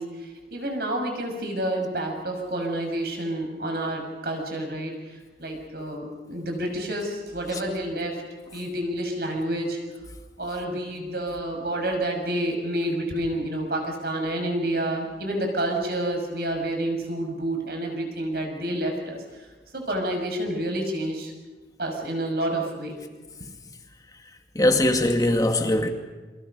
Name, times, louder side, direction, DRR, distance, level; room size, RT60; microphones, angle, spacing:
voice 1, 0.0-4.9 5.4-8.2 8.5-9.8 10.4-19.2 19.7-21.3 21.8-23.0, right 1 dB, 60° right, 6.3 m, -29 dB
voice 2, 24.5-25.9, left 1 dB, 20° left, 2.1 m, -21 dB
29.0 x 25.5 x 5.4 m
head